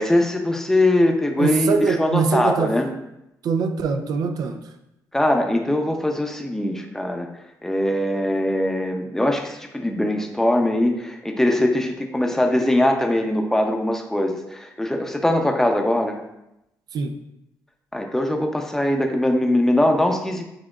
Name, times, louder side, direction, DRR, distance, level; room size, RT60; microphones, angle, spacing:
voice 1, 0.0-2.9 5.1-7.3 7.6-16.2 17.9-20.4, left 1 dB, 5° left, 3 dB, 0.6 m, -21 dB
voice 2, 1.4-2.7 3.4-4.6 16.9-17.1, right 5 dB, 65° right, 7 dB, 0.5 m, -22 dB
7.4 x 2.8 x 2.4 m, 0.86 s
cardioid pair, 80°, 7 cm